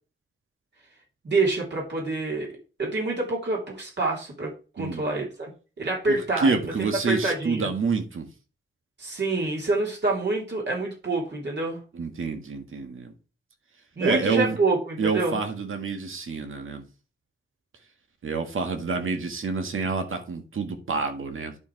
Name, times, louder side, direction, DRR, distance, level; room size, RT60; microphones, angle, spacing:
voice 1, 1.2-2.5 2.8-5.5 5.8-6.5 7.1-7.7 9.0-11.8 14.0-15.4, right 3 dB, 55° right, 3.0 m, -27 dB
voice 2, 6.1-8.3 11.9-13.1 14.0-14.6 15.0-16.8 18.2-21.6, right 4 dB, 80° right, 1.8 m, -28 dB
11.0 x 5.0 x 4.6 m
wide cardioid pair, 130°, 21 cm